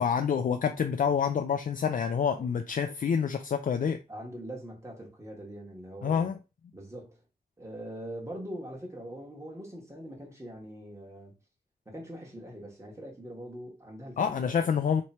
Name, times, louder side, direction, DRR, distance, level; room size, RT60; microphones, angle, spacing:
voice 1, 0.0-4.0 6.0-6.4 14.2-15.0, left 7 dB, 55° left, 0.4 m, -27 dB
voice 2, 4.1-6.3 6.7-7.2 7.6-11.3 11.8-14.4, right 1 dB, 15° right, 1.4 m, -42 dB
3.1 x 2.9 x 4.2 m
wide cardioid pair, 100°, 16 cm